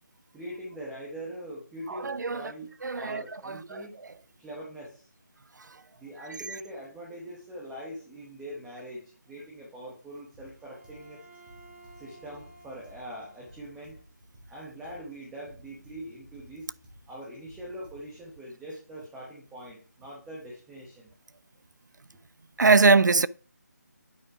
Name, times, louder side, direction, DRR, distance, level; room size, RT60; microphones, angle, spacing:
voice 1, 0.3-4.0 4.4-5.1 5.9-11.2 11.9-14.0 14.5-16.7 17.1-21.1, equal, 5° right, 1.1 m, -42 dB
voice 2, 1.9-2.5 2.8-3.8 22.6-23.3, right 4 dB, 80° right, 0.4 m, -22 dB
sound 1, 10.3-18.3, equal, 30° right, 2.7 m, -55 dB
Bowed string instrument, 10.6-14.0, right 2 dB, 55° right, 3.7 m, -54 dB
8.4 x 4.8 x 4.9 m
figure-of-eight pair, 165°, 10 cm